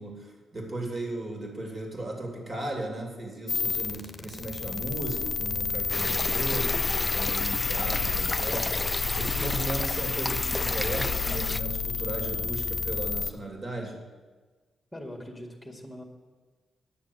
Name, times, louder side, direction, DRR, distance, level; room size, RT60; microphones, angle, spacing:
voice 1, 0.0-8.7 9.2-14.0, right 2 dB, 40° right, 0 dB, 2.7 m, -36 dB
sound 1, 3.5-13.3, left 5 dB, 45° left, 0.8 m, -30 dB
sound 2, 5.9-11.6, left 2 dB, 20° left, 0.4 m, -32 dB
voice 2, 14.9-16.0, left 1 dB, 5° left, 1 dB, 2.0 m, -41 dB
10.0 x 6.8 x 6.9 m, 1.4 s
supercardioid pair, 45°, 0 cm